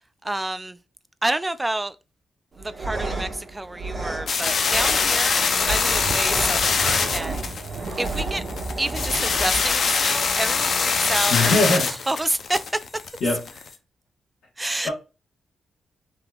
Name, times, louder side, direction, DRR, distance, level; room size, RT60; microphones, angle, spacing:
voice 1, 0.2-0.8 1.2-2.0 2.6-7.7 8.0-8.4 8.8-11.8 12.1-12.6 14.6-14.9, right 1 dB, 15° right, 0.4 m, -29 dB
sound 1, 2.5-10.5, right 2 dB, 35° right, 1.5 m, -34 dB
sound 2, 4.3-13.7, left 5 dB, 60° left, 0.5 m, -23 dB
sound 3, 5.8-9.8, right 3 dB, 70° right, 0.6 m, -34 dB
voice 2, 11.3-12.0 13.2-13.6 14.8-14.9, left 2 dB, 75° left, 1.2 m, -22 dB
3.6 x 2.8 x 2.3 m
cardioid pair, 65°, 0 cm